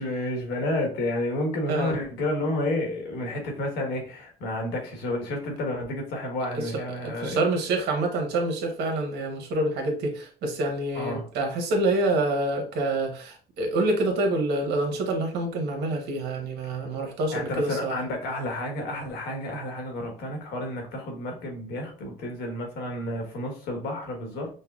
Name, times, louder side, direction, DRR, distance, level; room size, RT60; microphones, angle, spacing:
voice 1, 0.0-7.4 10.9-11.2 17.3-24.5, left 1 dB, 80° left, 2 dB, 1.3 m, -30 dB
voice 2, 7.0-18.0, right 2 dB, 75° right, 3 dB, 1.0 m, -27 dB
5.3 x 2.2 x 2.3 m, 0.40 s
cardioid pair, 110°, 17 cm